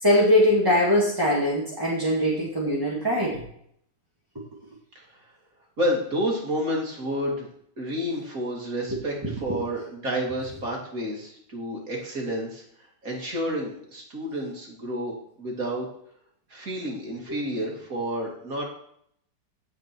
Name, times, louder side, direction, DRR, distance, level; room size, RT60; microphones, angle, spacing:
voice 1, 0.0-3.3 9.2-9.3, left 1 dB, 15° right, -6 dB, 2.2 m, -21 dB
voice 2, 5.8-7.5 7.8-12.6 13.0-15.9 16.5-18.7, equal, 50° right, -1 dB, 3.0 m, -30 dB
16.0 x 5.4 x 4.5 m, 0.68 s
omnidirectional pair, 1.9 m